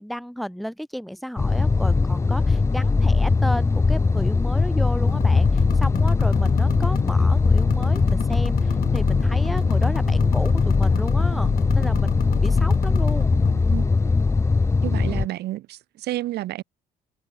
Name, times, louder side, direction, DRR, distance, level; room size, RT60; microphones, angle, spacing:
voice 1, 0.0-13.3, equal, ahead, 3.0 m, -33 dB
sound 1, 1.4-15.3, left 4 dB, 15° left, 0.7 m, -20 dB
sound 2, 5.1-13.6, left 12 dB, 60° left, 2.3 m, -29 dB
voice 2, 14.8-16.6, right 15 dB, 75° right, 3.6 m, -30 dB
cardioid pair, 110°, 17 cm